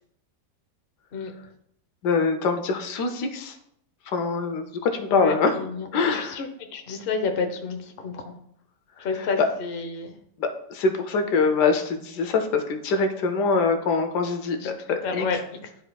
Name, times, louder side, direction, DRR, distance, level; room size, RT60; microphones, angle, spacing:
voice 1, 2.0-3.6 4.1-5.6 5.9-6.4 9.0-9.5 10.4-15.3, left 4 dB, 75° left, 6 dB, 1.3 m, -24 dB
voice 2, 5.1-7.8 8.0-8.3 9.0-10.1 14.6-14.7 15.0-15.4, left 4 dB, 45° left, 5 dB, 0.7 m, -29 dB
12.0 x 4.0 x 2.2 m, 0.72 s
omnidirectional pair, 1.9 m